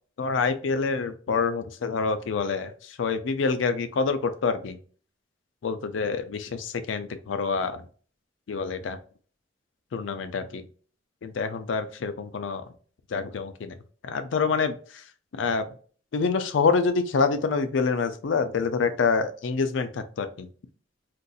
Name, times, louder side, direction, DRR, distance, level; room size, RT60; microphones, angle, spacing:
voice 1, 0.2-4.8 5.6-7.9 8.5-9.0 9.9-10.6 11.2-12.6 13.1-13.7 14.0-15.0 15.4-15.7 16.1-20.5, left 5 dB, 80° left, 10 dB, 0.4 m, -26 dB
3.9 x 2.6 x 2.3 m, 0.43 s
head